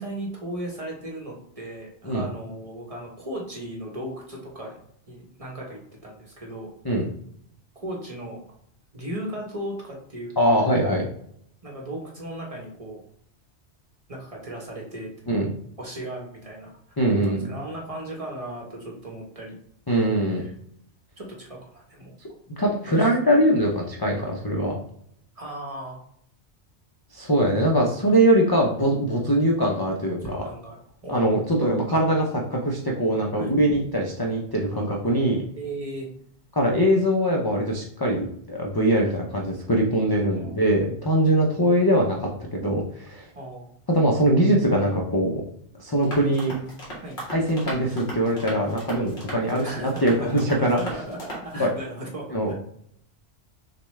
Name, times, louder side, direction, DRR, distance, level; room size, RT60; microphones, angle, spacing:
voice 1, 0.0-4.8 5.1-6.7 7.8-8.4 8.9-10.3 11.6-13.0 14.1-15.1 15.8-19.6 20.3-20.5 21.2-22.1 22.9-23.1 25.4-26.0 30.1-30.8 31.0-31.4 33.4-33.5 35.6-36.1 40.4-40.6 43.3-43.7 46.2-46.4 47.0-47.2 49.6-52.5, right 1 dB, 35° right, -1 dB, 1.0 m, -36 dB
voice 2, 10.4-11.0 15.3-15.5 17.0-17.5 19.9-20.4 22.6-24.8 27.1-30.4 31.1-35.4 36.5-43.3 43.9-45.4 45.8-46.5 47.3-50.8 51.5-51.7 52.3-52.5, right 1 dB, 30° left, -2 dB, 0.4 m, -22 dB
sound 1, 46.0-51.5, right 1 dB, 50° left, 1.6 m, -37 dB
6.5 x 2.3 x 3.1 m, 0.69 s
omnidirectional pair, 1.1 m